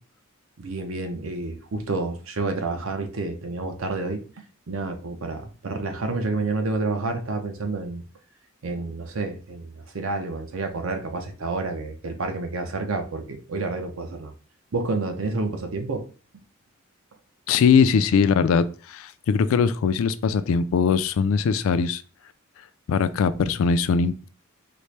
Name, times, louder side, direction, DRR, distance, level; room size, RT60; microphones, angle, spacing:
voice 1, 0.6-4.2 4.7-8.0 8.6-14.3 14.7-16.1, right 3 dB, 65° right, 0.6 m, -29 dB
voice 2, 17.5-22.0 22.9-24.3, left 6 dB, 65° left, 0.3 m, -21 dB
4.2 x 2.0 x 3.2 m
head